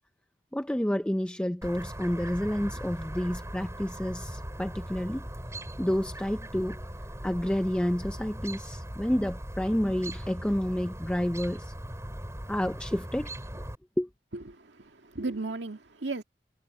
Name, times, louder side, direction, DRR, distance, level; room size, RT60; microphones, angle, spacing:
voice 1, 0.5-5.2 5.8-6.8 7.2-11.7 12.5-13.3 14.0-14.1, equal, 5° left, 0.5 m, -29 dB
Chirp tweet, 1.6-13.8, right 1 dB, 15° right, 6.4 m, -39 dB
voice 2, 14.3-16.2, right 3 dB, 85° right, 1.9 m, -35 dB
head